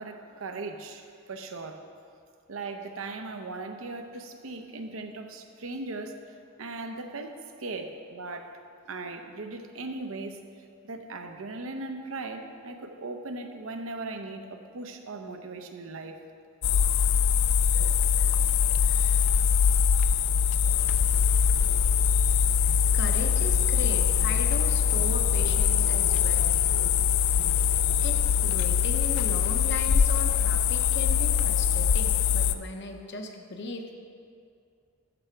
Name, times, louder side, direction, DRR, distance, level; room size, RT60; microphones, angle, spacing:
voice 1, 0.0-1.8 2.5-6.2 6.6-8.5 8.8-10.4 10.8-16.2, right 3 dB, 85° right, 6 dB, 0.7 m, -38 dB
sound 1, 16.6-32.5, left 7 dB, 80° left, 0.4 m, -23 dB
voice 2, 18.8-19.4 22.6-26.5 27.3-27.4 27.8-34.0, left 2 dB, 60° left, 4 dB, 0.8 m, -38 dB
12.5 x 4.9 x 4.5 m, 2.3 s
head